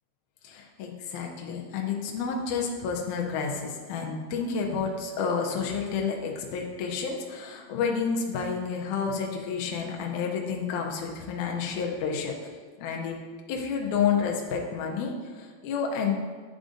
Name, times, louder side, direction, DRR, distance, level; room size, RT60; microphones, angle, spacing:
voice 1, 0.4-12.5 12.8-13.2 13.5-16.2, left 6 dB, 80° left, 0 dB, 2.1 m, -30 dB
10.0 x 3.7 x 2.5 m, 1.5 s
omnidirectional pair, 3.7 m